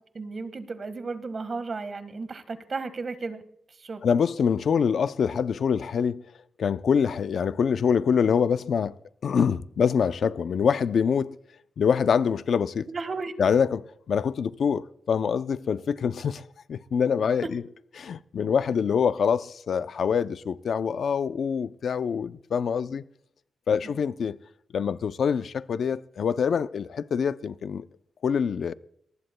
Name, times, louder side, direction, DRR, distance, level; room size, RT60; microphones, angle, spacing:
voice 1, 0.1-3.4 3.8-4.0 12.9-13.3 23.8-23.9, right 4 dB, 45° right, 1.5 m, -34 dB
voice 2, 4.0-6.2 6.6-8.9 9.2-11.4 11.8-12.9 13.4-17.6 18.0-23.0 23.7-24.4 24.7-27.8 28.2-28.7, left 6 dB, 65° left, 0.5 m, -25 dB
23.0 x 19.5 x 2.2 m
wide cardioid pair, 115°, 0 cm